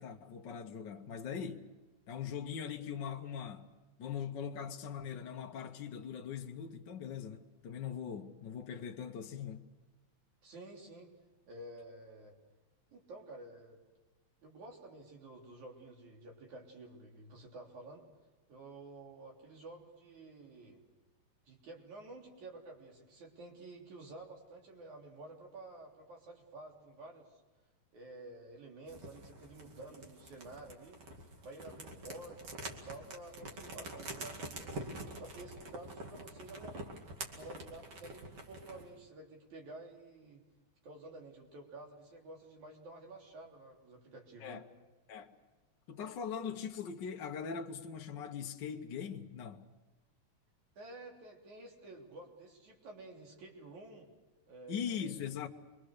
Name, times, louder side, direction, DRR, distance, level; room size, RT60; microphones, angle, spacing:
voice 1, 0.0-1.7 2.1-3.7 4.0-9.7 44.4-44.6 45.1-45.3 45.9-49.6 54.7-55.5, left 7 dB, 55° left, 1.3 m, -41 dB
voice 2, 10.4-11.1 11.5-12.3 12.9-13.8 14.4-18.0 18.5-20.8 21.5-27.3 27.9-31.0 31.4-36.8 37.3-40.4 40.8-44.6 50.7-54.1 54.5-55.3, right 2 dB, 70° right, 4.8 m, -51 dB
sound 1, 28.9-38.9, right 2 dB, 50° right, 3.2 m, -46 dB
28.0 x 23.0 x 6.6 m
omnidirectional pair, 3.5 m